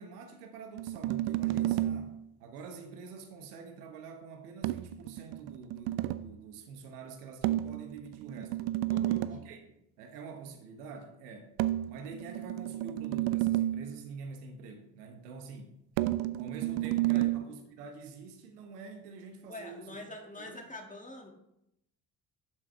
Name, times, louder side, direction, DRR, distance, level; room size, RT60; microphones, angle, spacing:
voice 1, 0.0-8.6 9.3-9.6 10.0-11.5 11.9-15.8 16.4-20.0 20.4-20.6, right 5 dB, 70° right, 5 dB, 1.2 m, -46 dB
sound 1, 0.8-2.2 4.6-6.3 7.4-9.5 11.6-14.0 16.0-17.4, right 15 dB, 55° right, 0.5 m, -31 dB
voice 2, 8.9-9.3 17.1-17.4 19.5-21.3, left 2 dB, 15° left, 3 dB, 2.1 m, -45 dB
12.0 x 7.3 x 3.3 m, 0.80 s
figure-of-eight pair, 45°, 47 cm